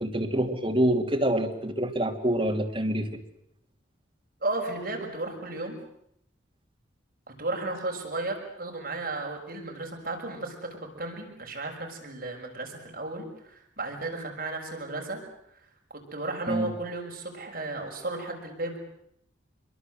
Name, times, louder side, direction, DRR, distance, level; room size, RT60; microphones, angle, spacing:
voice 1, 0.0-3.1 16.5-16.7, right 1 dB, 25° right, 3 dB, 2.8 m, -26 dB
voice 2, 4.4-5.8 7.4-10.5 10.8-15.2 16.1-18.8, right 2 dB, 50° right, 1 dB, 6.2 m, -34 dB
27.0 x 23.0 x 7.9 m, 0.74 s
head